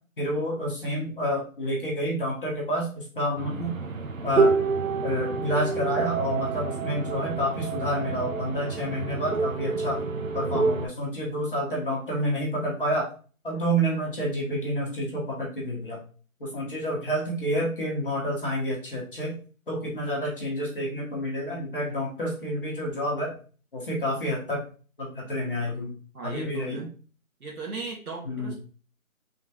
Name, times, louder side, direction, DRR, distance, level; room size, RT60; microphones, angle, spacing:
voice 1, 0.2-3.7 4.2-4.5 5.0-10.0 10.3-13.1 13.4-16.0 16.4-19.3 19.7-23.4 23.7-24.6 25.0-25.9 26.2-26.9 28.2-28.5, equal, 40° left, -4 dB, 1.2 m, -29 dB
sound 1, 3.4-10.9, right 4 dB, 65° right, 0.7 m, -28 dB
voice 2, 26.1-26.8 27.4-28.5, right 3 dB, 85° right, -3 dB, 1.4 m, -37 dB
3.6 x 3.5 x 2.8 m, 0.40 s
figure-of-eight pair, 170°, 43 cm